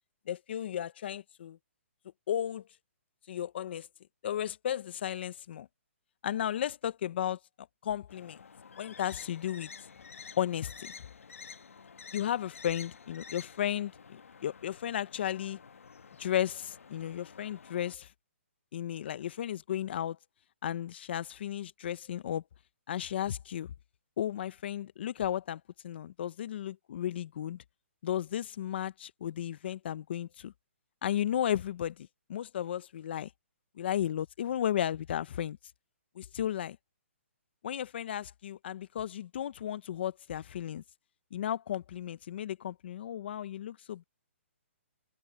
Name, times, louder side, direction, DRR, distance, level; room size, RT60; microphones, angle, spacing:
voice 1, 0.3-1.6 2.3-2.7 3.3-3.9 4.2-5.7 6.2-7.4 7.8-8.4 8.8-9.7 10.4-10.9 12.1-15.6 16.2-18.1 18.7-20.2 20.6-22.4 22.9-23.7 24.2-27.6 28.0-30.5 31.0-33.3 33.8-35.6 36.2-36.8 37.6-40.8 41.3-44.0, left 10 dB, 50° left, 0.7 m, -34 dB
sound 1, 8.1-18.0, left 6 dB, 85° left, 1.3 m, -50 dB
open air
hypercardioid pair, 155°, 7 cm